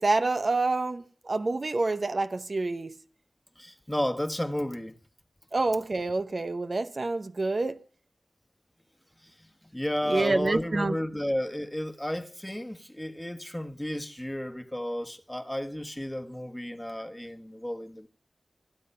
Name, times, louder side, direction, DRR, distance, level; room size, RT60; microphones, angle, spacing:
voice 1, 0.0-3.0 5.5-7.8 10.1-11.0, right 3 dB, 55° right, 0.9 m, -27 dB
voice 2, 3.6-4.9 9.2-9.5 9.7-18.1, equal, 10° left, 1.4 m, -32 dB
25.0 x 8.6 x 5.6 m
cardioid pair, 40°, 0 cm